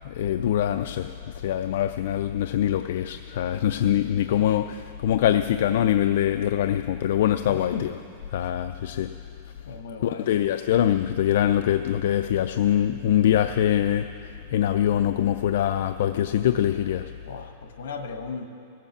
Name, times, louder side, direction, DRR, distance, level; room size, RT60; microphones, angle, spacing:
voice 1, 0.0-7.9 8.3-9.1 10.0-17.1, left 11 dB, 70° left, 9 dB, 0.3 m, -24 dB
voice 2, 7.5-7.9 9.7-10.3 17.2-18.5, left 5 dB, 90° left, 6 dB, 1.3 m, -36 dB
16.5 x 7.4 x 7.1 m, 2.5 s
supercardioid pair, 160°, 0 cm